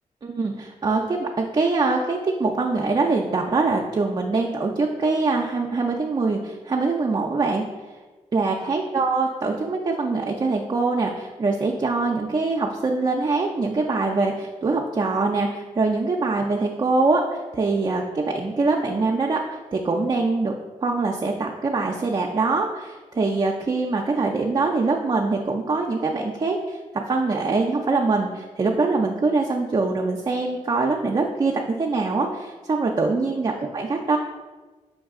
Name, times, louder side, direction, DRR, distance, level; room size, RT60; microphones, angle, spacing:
voice 1, 0.2-7.6 8.3-19.4 19.7-34.2, right 3 dB, 35° right, 1 dB, 0.4 m, -23 dB
5.7 x 2.3 x 3.6 m, 1.3 s
supercardioid pair, 50°, 14 cm